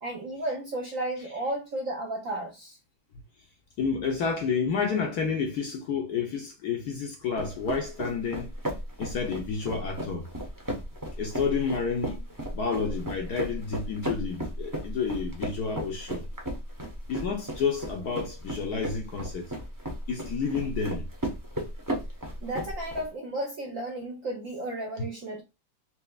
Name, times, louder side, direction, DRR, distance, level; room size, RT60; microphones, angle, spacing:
voice 1, 0.0-2.8 22.4-25.4, right 1 dB, 60° right, 0.8 m, -33 dB
voice 2, 3.8-8.5 9.0-10.3 11.2-12.3 12.5-16.3 17.1-19.5 20.1-21.1, left 5 dB, 70° left, 1.0 m, -30 dB
sound 1, 7.4-23.0, equal, 25° right, 0.4 m, -35 dB
4.4 x 2.9 x 2.3 m
omnidirectional pair, 2.2 m